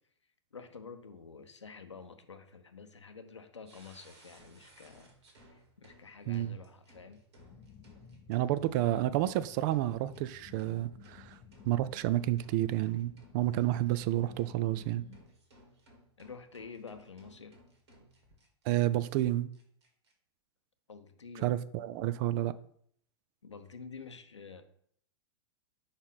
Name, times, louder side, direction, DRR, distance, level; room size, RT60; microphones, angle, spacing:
voice 1, 0.5-5.1 5.5-7.2 16.2-17.6 20.9-21.6 23.4-24.6, left 5 dB, 90° left, 0.7 m, -49 dB
sound 1, 3.6-18.7 19.1-19.2 19.5-20.1, equal, 70° right, 1.9 m, -61 dB
voice 2, 6.3-6.6 8.3-11.4 11.7-15.1 18.7-19.5 21.4-22.6, right 14 dB, 45° right, 0.4 m, -30 dB
sound 2, 7.4-15.2, left 7 dB, 35° left, 0.6 m, -55 dB
5.2 x 4.2 x 5.5 m
hypercardioid pair, 100°, 15 cm